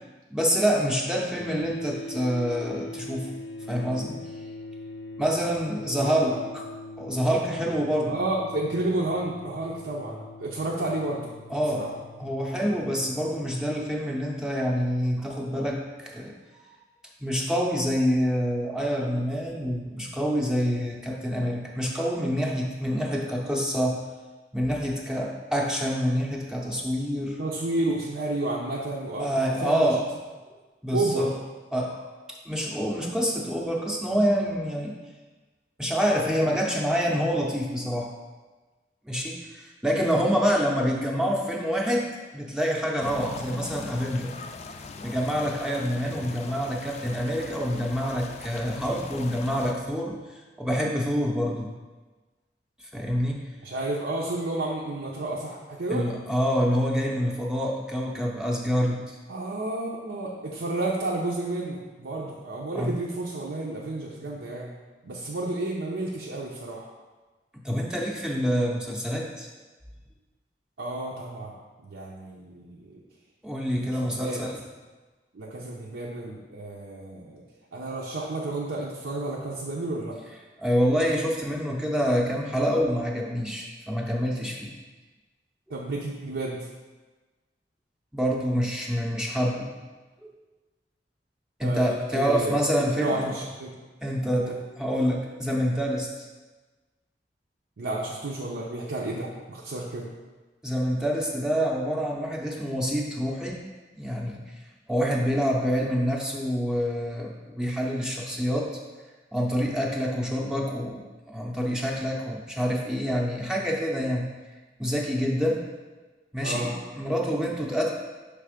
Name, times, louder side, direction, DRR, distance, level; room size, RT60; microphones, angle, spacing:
voice 1, 0.3-3.3 3.7-4.2 5.2-6.7 7.0-8.2 11.5-11.9 12.2-16.3 17.2-24.0 24.5-27.4 29.2-30.0 30.8-31.3 31.7-32.0 32.3-35.0 35.8-38.1 39.1-44.3 45.0-50.2 50.6-51.7 52.9-53.4 55.9-59.2 62.7-62.9 67.6-69.5 73.4-74.6 80.6-84.7 88.1-89.7 91.6-93.3 94.0-96.1 100.6-103.6 103.9-104.4 104.9-108.8 109.3-114.3 114.8-115.7 116.3-117.9, equal, 5° right, -2 dB, 0.6 m, -27 dB
Dist Chr A oct, 1.4-13.5, left 2 dB, 85° left, 0.6 m, -42 dB
voice 2, 6.0-6.4 8.1-11.2 11.7-11.9 27.4-29.9 30.9-31.3 53.6-56.1 59.3-64.7 65.0-66.9 70.8-71.5 71.8-73.0 73.8-74.4 75.3-77.4 77.7-80.2 85.7-86.7 91.6-92.7 93.0-93.7 94.4-94.6 97.8-100.1 116.4-116.7, right 2 dB, 85° right, -4 dB, 0.7 m, -31 dB
Brook with village atmosphere, 43.0-49.7, left 4 dB, 40° left, 0.3 m, -41 dB
5.9 x 3.4 x 5.0 m, 1.3 s
head